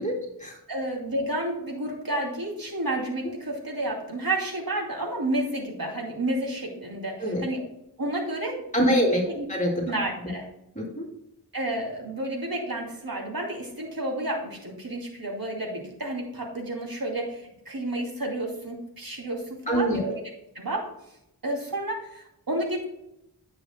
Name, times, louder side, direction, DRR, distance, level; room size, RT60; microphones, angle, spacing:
voice 1, 0.0-0.5 7.2-7.4 8.7-9.2 9.5-9.8 10.7-11.0 19.7-20.1, equal, 20° left, -1 dB, 2.8 m, -25 dB
voice 2, 0.7-7.6 8.0-9.0 9.3-9.5 9.9-10.5 11.5-20.1 20.5-20.9 21.4-22.8, right 1 dB, 65° right, -1 dB, 2.8 m, -31 dB
10.5 x 8.0 x 2.2 m, 0.81 s
wide cardioid pair, 50°, 38 cm